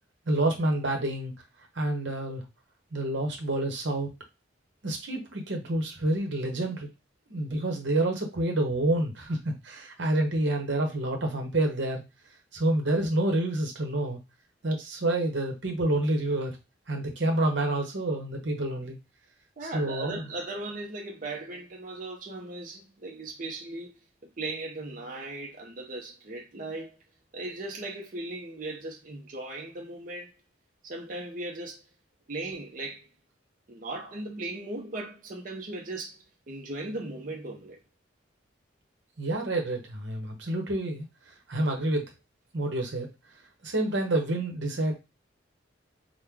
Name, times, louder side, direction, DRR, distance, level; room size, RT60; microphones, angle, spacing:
voice 1, 0.3-1.3 1.7-2.4 2.9-4.1 4.8-6.9 7.3-12.0 12.5-14.2 14.6-16.6 16.9-19.0 19.7-20.3 39.2-41.1 41.5-42.1 42.5-43.1 43.6-44.9, right 1 dB, 70° right, 0.9 m, -28 dB
voice 2, 19.6-23.9 24.2-27.0 27.3-30.3 30.8-31.8 32.3-33.1 33.7-36.2 36.5-37.8, right 2 dB, 45° right, 0.6 m, -38 dB
3.0 x 2.1 x 3.5 m
head